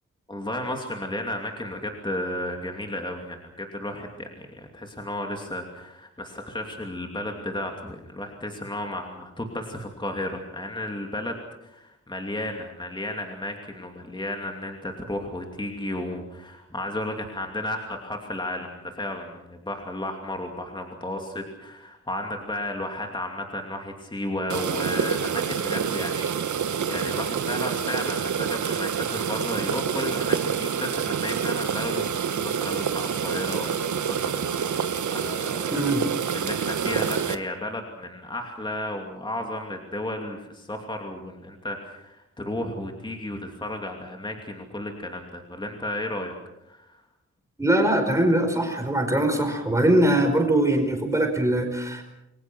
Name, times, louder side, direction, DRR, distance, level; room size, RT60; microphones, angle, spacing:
voice 1, 0.3-35.8 36.3-46.3 46.6-47.0, left 1 dB, 15° left, 2 dB, 2.7 m, -33 dB
sound 1, 24.5-37.4, right 7 dB, 85° right, 1.3 m, -27 dB
voice 2, 35.7-36.1 47.6-52.0, right 1 dB, 10° right, 4 dB, 5.1 m, -22 dB
29.0 x 23.0 x 6.2 m, 0.87 s
wide cardioid pair, 165°, 29 cm